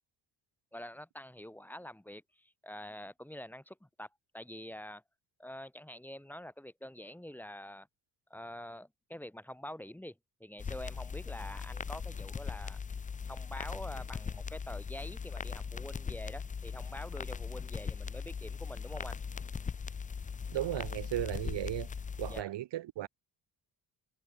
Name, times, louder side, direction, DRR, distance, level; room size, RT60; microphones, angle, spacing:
voice 1, 0.7-4.1 4.3-5.0 5.4-7.9 8.3-12.8 13.3-19.2 22.3-22.5, left 1 dB, 5° left, 1.7 m, -46 dB
sound 1, 10.6-22.4, left 6 dB, 20° left, 0.4 m, -39 dB
voice 2, 20.5-21.9 22.2-23.1, right 13 dB, 80° right, 1.6 m, -35 dB
cardioid pair, 145°, 43 cm